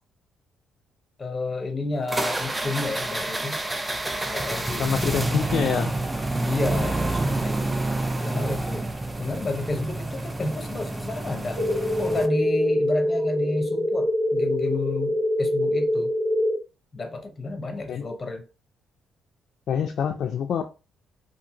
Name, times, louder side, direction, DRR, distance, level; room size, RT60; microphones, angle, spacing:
voice 1, 1.2-3.6 4.3-4.9 6.4-8.9 9.2-11.7 12.0-16.1 16.9-18.4, left 2 dB, 25° left, 0.8 m, -31 dB
sound 1, 2.1-12.3, right 2 dB, 15° right, 0.4 m, -28 dB
voice 2, 4.8-5.9 17.9-18.0 19.7-20.6, left 8 dB, 60° left, 0.3 m, -25 dB
sound 2, 11.6-16.6, left 1 dB, 65° right, 1.0 m, -24 dB
2.6 x 2.6 x 2.8 m
cardioid pair, 110°, 0 cm